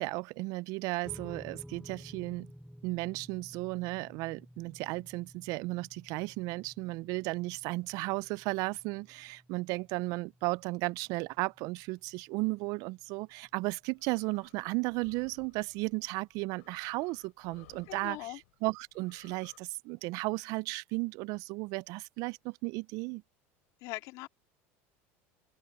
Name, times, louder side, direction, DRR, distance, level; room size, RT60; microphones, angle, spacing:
voice 1, 0.0-2.5 2.8-18.3 18.6-23.2, right 24 dB, 60° right, 0.4 m, -35 dB
sound 1, 1.0-13.6, equal, ahead, 3.6 m, -54 dB
sound 2, 13.5-19.6, left 19 dB, 85° left, 6.1 m, -62 dB
voice 2, 17.9-18.4 23.8-24.3, left 21 dB, 65° left, 2.3 m, -41 dB
open air
supercardioid pair, 105°, 7 cm